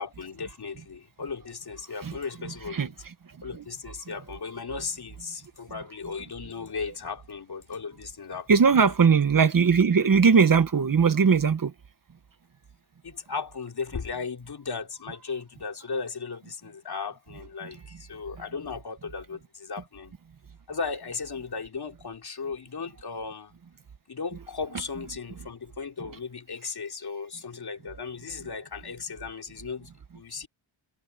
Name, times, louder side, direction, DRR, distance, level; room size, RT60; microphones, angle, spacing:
voice 1, 0.0-2.9 3.4-8.5 8.8-9.1 13.0-20.1 20.7-23.6 24.1-30.5, left 5 dB, 50° left, 2.9 m, -36 dB
voice 2, 8.5-11.7, right 6 dB, 45° right, 1.0 m, -19 dB
wide cardioid pair, 120°, 49 cm